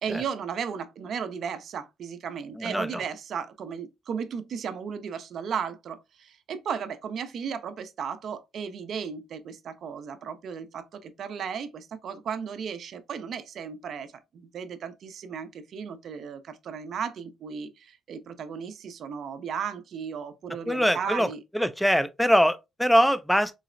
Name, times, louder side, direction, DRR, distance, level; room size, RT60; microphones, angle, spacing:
voice 1, 0.0-21.4, right 7 dB, 65° right, 0.5 m, -35 dB
voice 2, 2.6-3.0 20.7-21.3 21.5-23.5, equal, ahead, 0.3 m, -23 dB
3.9 x 2.0 x 2.4 m
cardioid pair, 90°, 0 cm